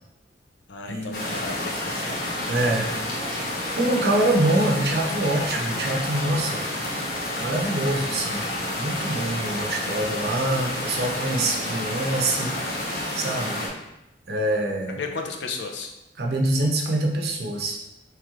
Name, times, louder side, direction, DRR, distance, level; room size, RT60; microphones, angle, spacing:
voice 1, 0.7-2.2 14.9-15.9, left 4 dB, 85° left, 3 dB, 0.5 m, -34 dB
sound 1, 1.1-13.7, left 1 dB, 55° left, 0.9 m, -29 dB
voice 2, 2.5-2.9 3.8-6.7 7.4-8.4 8.8-12.6 13.1-13.6 14.3-15.0 16.2-17.8, right 1 dB, 65° right, 0 dB, 0.7 m, -25 dB
3.2 x 3.1 x 3.6 m, 0.91 s
head